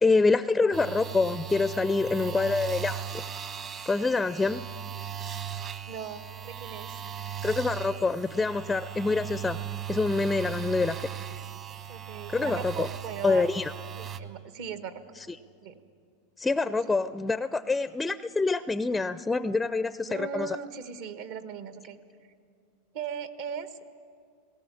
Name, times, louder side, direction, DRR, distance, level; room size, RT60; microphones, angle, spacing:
voice 1, 0.0-3.2 3.9-4.6 7.4-9.6 9.9-11.1 12.3-12.9 13.2-13.7 16.4-20.6, left 3 dB, 10° left, 14 dB, 0.4 m, -26 dB
sound 1, 0.7-14.2, right 9 dB, 35° right, 1.1 m, -38 dB
voice 2, 5.9-7.0 11.9-13.5 13.9-15.0 15.6-15.8 20.1-22.0 22.9-23.8, right 7 dB, 60° right, 10 dB, 1.4 m, -38 dB
19.5 x 18.0 x 8.5 m, 2.3 s
hypercardioid pair, 115°, 0 cm